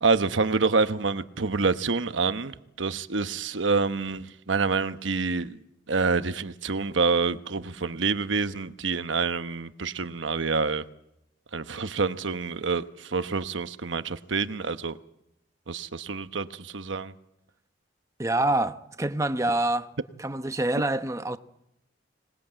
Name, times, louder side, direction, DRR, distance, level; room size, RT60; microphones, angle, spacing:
voice 1, 0.0-5.6 5.9-10.8 11.5-15.0 15.7-17.1, right 4 dB, 85° right, 1.0 m, -27 dB
voice 2, 18.2-19.9 20.2-21.4, right 2 dB, 15° right, 0.9 m, -26 dB
25.0 x 20.0 x 8.9 m
head